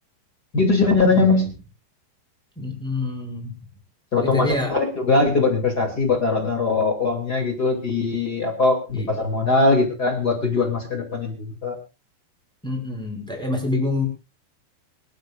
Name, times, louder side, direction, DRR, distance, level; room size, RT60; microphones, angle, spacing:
voice 1, 0.5-1.4 4.1-11.8, left 3 dB, 30° left, 1 dB, 2.1 m, -21 dB
voice 2, 2.6-3.5 4.2-4.7 8.9-9.1 12.6-14.1, left 2 dB, ahead, 1 dB, 5.5 m, -27 dB
25.0 x 12.0 x 2.5 m, 0.29 s
omnidirectional pair, 5.6 m